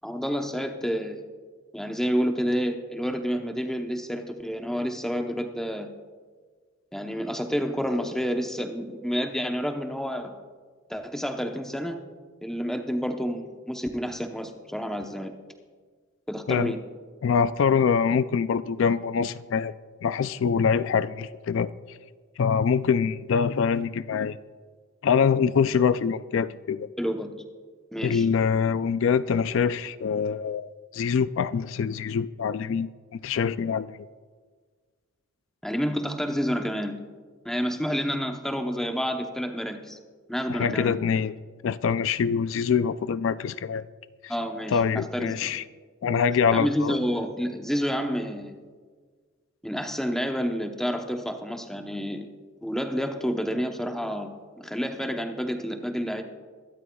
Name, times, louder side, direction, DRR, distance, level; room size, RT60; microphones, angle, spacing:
voice 1, 0.0-1.2 1.7-5.9 6.9-10.4 10.9-12.0 12.4-15.3 16.3-16.8 27.0-27.3 27.9-28.3 35.6-37.0 37.4-40.0 40.3-41.0 44.3-45.6 46.5-48.6 49.6-52.3 52.6-54.3 54.6-56.2, equal, ahead, 4 dB, 0.8 m, -29 dB
voice 2, 17.2-19.7 20.0-22.0 22.4-24.4 25.0-26.9 28.0-32.9 33.2-34.1 40.5-41.3 41.6-43.8 44.2-44.3 44.7-45.6 46.0-47.0, left 6 dB, 65° left, 14 dB, 0.3 m, -24 dB
23.5 x 12.5 x 2.3 m, 1.5 s
head